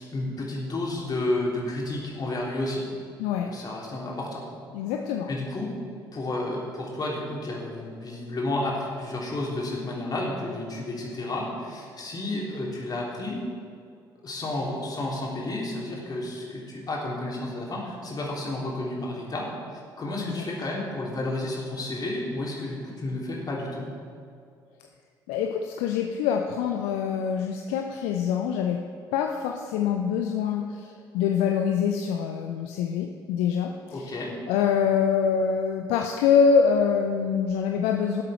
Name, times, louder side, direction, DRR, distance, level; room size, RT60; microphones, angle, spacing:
voice 1, 0.0-2.8 3.4-4.4 5.3-5.7 6.1-13.4 14.2-23.9 33.9-34.3, left 2 dB, 35° left, -3 dB, 3.5 m, -31 dB
voice 2, 3.2-3.5 4.7-5.3 20.2-20.4 25.3-28.8 29.1-34.1 34.5-38.2, left 7 dB, 65° left, 3 dB, 0.7 m, -25 dB
18.5 x 7.8 x 4.4 m, 2.2 s
figure-of-eight pair, 50°, 12 cm